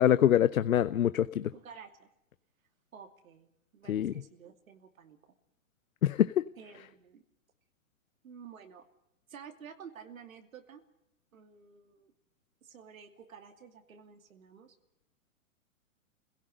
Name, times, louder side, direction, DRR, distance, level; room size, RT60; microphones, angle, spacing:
voice 1, 0.0-1.5 3.9-4.1 6.0-6.5, left 10 dB, 80° left, 14 dB, 0.8 m, -25 dB
voice 2, 1.5-2.1 2.9-5.2 6.6-7.2 8.2-8.8 9.3-10.8 11.3-12.1 12.6-14.8, right 7 dB, 80° right, 6 dB, 2.7 m, -51 dB
25.5 x 17.0 x 6.6 m, 0.80 s
hypercardioid pair, 130°, 41 cm